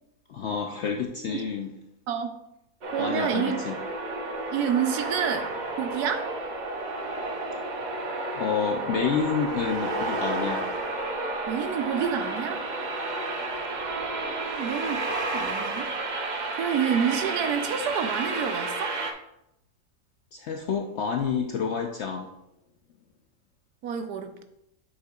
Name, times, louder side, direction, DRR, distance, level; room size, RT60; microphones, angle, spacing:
voice 1, 0.3-1.7 3.0-3.8 8.3-10.7 20.3-22.3, left 6 dB, 65° left, 2 dB, 0.7 m, -29 dB
voice 2, 2.1-2.4 2.9-3.6 4.5-6.3 11.5-12.6 13.7-15.1 15.3-15.9 16.5-19.0 23.8-24.4, right 8 dB, 75° right, 7 dB, 1.2 m, -29 dB
sound 1, 2.8-19.1, right 2 dB, 60° right, 0.4 m, -31 dB
7.6 x 6.5 x 2.4 m, 0.83 s
omnidirectional pair, 1.7 m